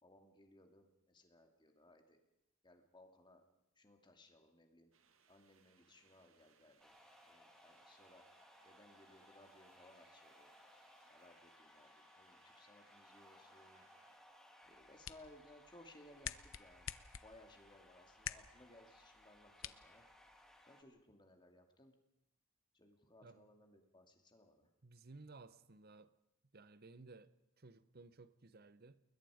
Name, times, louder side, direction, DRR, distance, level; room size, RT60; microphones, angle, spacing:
voice 1, 0.0-2.2 2.6-3.4 3.8-4.9 5.3-6.9 7.2-8.2 8.6-10.5 11.1-13.9 14.6-16.9 17.2-20.0 20.7-21.9 22.7-24.7, left 1 dB, 20° left, 2.6 m, -63 dB
sound 1, 4.9-14.2, right 6 dB, 70° right, 2.0 m, -74 dB
sound 2, 6.8-20.8, left 1 dB, ahead, 2.3 m, -64 dB
sound 3, 14.6-20.6, left 10 dB, 65° left, 0.8 m, -51 dB
voice 2, 24.8-26.1 26.5-29.0, right 3 dB, 45° right, 0.9 m, -58 dB
29.5 x 21.5 x 5.1 m
head